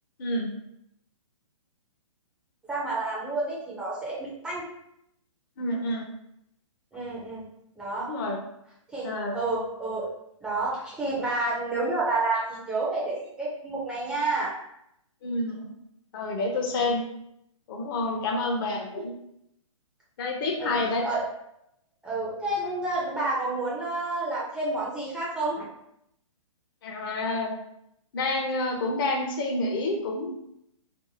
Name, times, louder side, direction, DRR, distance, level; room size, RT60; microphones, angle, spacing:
voice 1, 2.7-4.6 6.9-7.4 7.8-8.1 8.9-10.1 10.4-14.5 16.7-16.9 18.0-18.2 20.6-20.7 21.0-21.2 22.0-25.6, right 2 dB, 5° right, -7 dB, 0.4 m, -29 dB
voice 2, 5.6-6.1 8.0-8.4 9.0-9.4 15.2-15.7 16.1-17.0 17.7-19.1 20.2-21.0 26.8-27.5 28.1-30.3, left 2 dB, 40° left, 1 dB, 0.6 m, -28 dB
2.7 x 2.4 x 2.6 m, 0.77 s
hypercardioid pair, 140°, 17 cm